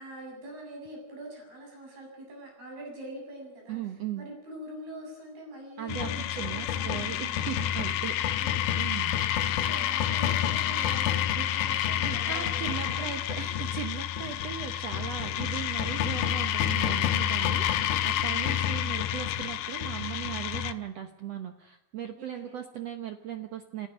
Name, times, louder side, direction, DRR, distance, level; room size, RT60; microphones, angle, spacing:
voice 1, 0.0-3.8 4.2-7.6 8.1-8.6 9.6-13.1 13.4-13.5 18.5-18.6 22.2-22.6, right 1 dB, 90° right, 0 dB, 9.5 m, -44 dB
voice 2, 3.7-4.3 5.8-9.1 11.3-11.4 12.0-23.9, right 10 dB, 70° right, 7 dB, 1.6 m, -38 dB
sound 1, 5.9-20.7, left 10 dB, 70° left, 2.2 m, -29 dB
29.0 x 14.5 x 6.3 m, 0.89 s
omnidirectional pair, 4.3 m